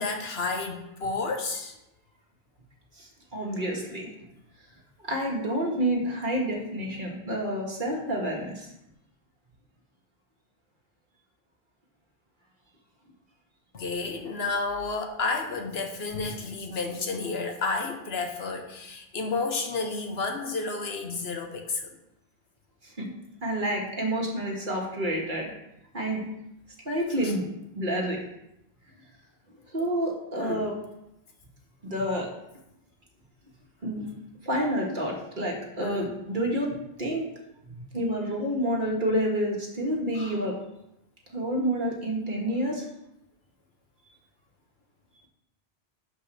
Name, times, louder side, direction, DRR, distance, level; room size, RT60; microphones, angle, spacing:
voice 1, 0.0-1.7 13.7-22.0 27.2-27.3 30.4-30.7 35.8-36.2, left 3 dB, 75° left, 3 dB, 1.3 m, -31 dB
voice 2, 3.0-4.1 5.0-8.7 22.8-23.1 23.4-25.5 25.9-26.2 26.8-27.4 27.7-28.2 29.7-30.7 31.8-32.3 33.8-34.1 34.4-37.2 37.7-40.5 41.3-42.8, equal, 50° right, -1 dB, 1.8 m, -29 dB
12.0 x 5.3 x 3.4 m, 0.86 s
omnidirectional pair, 1.1 m